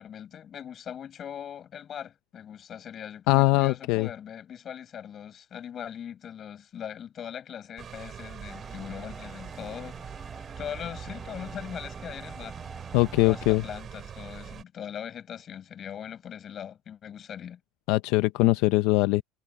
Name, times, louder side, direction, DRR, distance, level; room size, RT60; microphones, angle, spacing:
voice 1, 0.0-10.0 10.3-12.6 13.2-17.6, left 9 dB, 40° left, 6.7 m, -40 dB
voice 2, 3.3-4.1 12.9-13.6 17.9-19.2, left 21 dB, 75° left, 0.6 m, -22 dB
sound 1, 7.8-14.6, right 8 dB, 35° right, 3.6 m, -42 dB
sound 2, 8.5-13.5, right 1 dB, 5° right, 7.7 m, -47 dB
cardioid pair, 125°, 0 cm